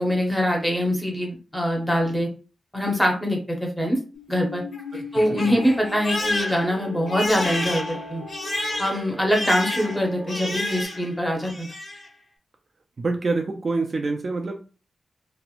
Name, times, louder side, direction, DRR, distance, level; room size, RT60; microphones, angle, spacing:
voice 1, 0.0-2.3 2.7-4.0 4.3-4.6 5.1-8.2 8.8-11.7, equal, 5° left, 0 dB, 0.7 m, -23 dB
Crying sobbing, 4.1-11.1 11.4-12.1, left 2 dB, 80° left, 0.9 m, -31 dB
voice 2, 4.9-5.6 13.0-14.6, right 3 dB, 40° right, 4 dB, 0.3 m, -27 dB
sound 1, 5.6-10.8, right 1 dB, 85° right, 0.9 m, -39 dB
2.9 x 2.0 x 2.4 m, 0.35 s
wide cardioid pair, 140°, 0 cm